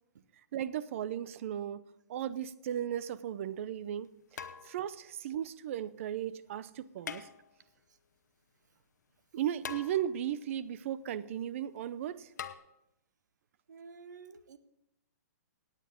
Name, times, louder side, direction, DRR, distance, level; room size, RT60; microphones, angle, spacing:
voice 1, 0.5-1.8 2.1-7.3 9.3-12.3, right 10 dB, 50° right, 16 dB, 0.6 m, -36 dB
bike wstrings, 3.0-3.1 4.3-5.1 7.0-7.8 9.6-10.4 12.4-12.6, left 7 dB, 75° left, 1.0 m, -44 dB
voice 2, 13.7-14.6, right 5 dB, 80° right, 11 dB, 1.1 m, -50 dB
18.0 x 9.2 x 3.7 m, 0.85 s
hypercardioid pair, 150°, 9 cm